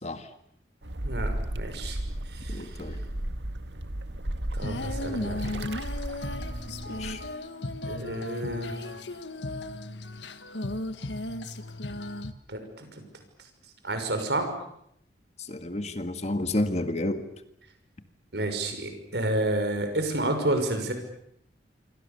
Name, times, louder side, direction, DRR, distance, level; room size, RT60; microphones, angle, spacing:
sound 1, 0.8-7.3, right 1 dB, 90° right, 1.9 m, -34 dB
voice 1, 1.0-2.0 2.3-2.7 4.5-5.6 7.9-8.8 12.5-12.9 13.8-14.4 18.3-20.9, right 1 dB, 70° right, 6 dB, 6.2 m, -30 dB
voice 2, 2.5-3.0 7.0-7.2 15.4-17.3, left 1 dB, 40° left, 9 dB, 1.8 m, -30 dB
Female singing, 4.6-12.3, left 1 dB, 90° left, 1.7 m, -35 dB
27.5 x 24.5 x 7.1 m, 0.73 s
head